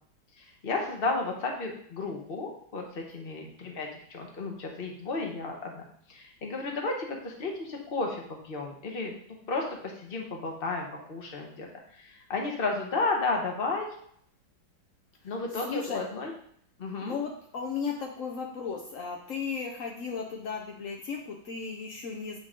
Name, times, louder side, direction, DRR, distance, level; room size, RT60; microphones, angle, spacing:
voice 1, 0.4-5.8 6.1-11.7 11.9-13.9 15.2-16.3 16.8-17.2, left 3 dB, 35° left, 1 dB, 1.0 m, -33 dB
voice 2, 15.5-16.0 17.0-22.4, left 5 dB, 75° left, 1 dB, 0.7 m, -35 dB
8.0 x 3.9 x 3.7 m, 0.65 s
omnidirectional pair, 2.3 m